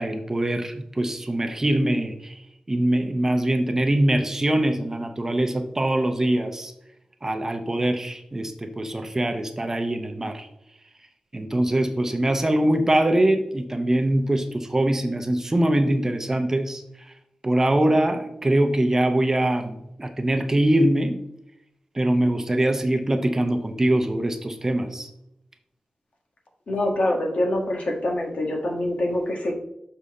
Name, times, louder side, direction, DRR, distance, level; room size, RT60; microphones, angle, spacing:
voice 1, 0.0-2.3 2.7-6.7 7.2-10.5 11.3-16.8 17.4-21.2 21.9-25.1, right 1 dB, 20° right, 6 dB, 0.7 m, -23 dB
voice 2, 26.7-29.5, left 1 dB, 65° left, 1 dB, 1.7 m, -25 dB
6.8 x 5.6 x 3.7 m, 0.81 s
wide cardioid pair, 145°, 2 cm